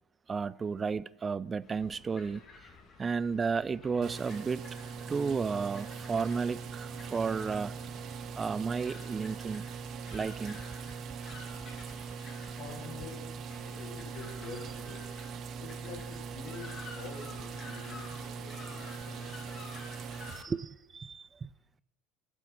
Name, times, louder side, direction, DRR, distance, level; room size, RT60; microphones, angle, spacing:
voice 1, 0.3-2.4 3.0-4.6 5.1-7.7 8.4-9.7 10.1-10.6 20.4-21.5, right 5 dB, 25° right, 0.3 m, -33 dB
sound 1, 1.6-20.5, left 4 dB, 30° left, 2.3 m, -52 dB
sound 2, 4.0-20.4, right 6 dB, 45° right, 0.8 m, -41 dB
voice 2, 11.5-15.0 15.3-19.8, left 5 dB, 55° left, 3.5 m, -48 dB
8.2 x 8.0 x 7.4 m
figure-of-eight pair, 70°, 0 cm